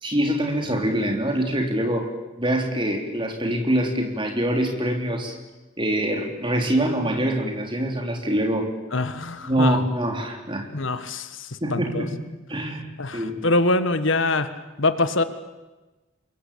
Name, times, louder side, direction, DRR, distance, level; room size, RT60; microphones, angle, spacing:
voice 1, 0.0-2.1 2.4-5.4 5.8-8.7 9.4-10.7 11.6-12.2 12.5-12.8 13.1-13.4, right 1 dB, 25° right, 4 dB, 3.6 m, -24 dB
voice 2, 8.9-9.8 10.7-12.1 13.0-14.5 14.8-15.2, left 2 dB, 65° left, 11 dB, 1.6 m, -24 dB
27.0 x 22.5 x 8.6 m, 1.1 s
head